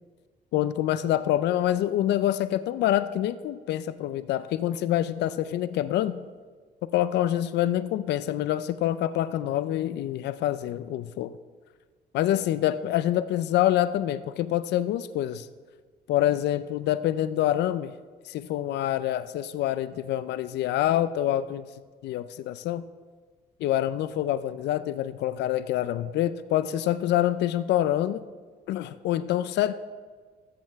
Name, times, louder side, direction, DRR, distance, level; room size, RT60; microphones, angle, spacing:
voice 1, 0.5-6.2 6.8-11.3 12.1-15.5 16.1-17.9 18.3-21.7 22.0-22.8 23.6-28.2 28.7-29.7, left 12 dB, 80° left, 14 dB, 0.4 m, -26 dB
13.5 x 7.6 x 3.5 m, 1.5 s
cardioid pair, 115°, 17 cm